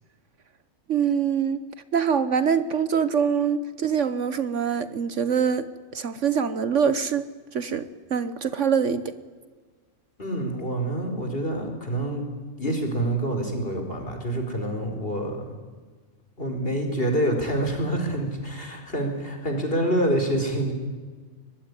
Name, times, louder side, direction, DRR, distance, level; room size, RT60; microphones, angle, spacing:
voice 1, 0.9-1.6 1.9-5.7 5.9-7.2 7.5-9.1, right 7 dB, 60° right, 1.3 m, -24 dB
voice 2, 10.2-12.2 12.6-15.5 16.4-20.7, right 1 dB, 40° left, 4.9 m, -27 dB
24.0 x 21.5 x 9.8 m
omnidirectional pair, 1.5 m